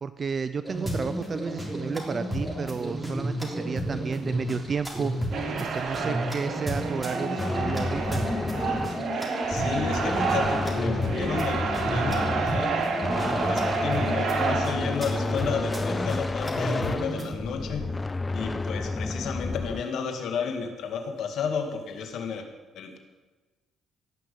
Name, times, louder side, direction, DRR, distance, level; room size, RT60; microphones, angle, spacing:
voice 1, 0.0-8.2, right 5 dB, 40° right, 12 dB, 0.5 m, -32 dB
sound 1, 0.6-17.3, equal, 10° right, 3.6 m, -32 dB
sound 2, 5.3-14.7, right 5 dB, 60° right, 2.1 m, -30 dB
sound 3, 7.4-19.8, left 3 dB, 25° left, 0.3 m, -31 dB
voice 2, 9.5-17.9 18.3-22.5 22.8-23.0, left 6 dB, 75° left, 6 dB, 2.0 m, -32 dB
17.0 x 6.0 x 8.4 m, 1.3 s
cardioid pair, 90°, 0 cm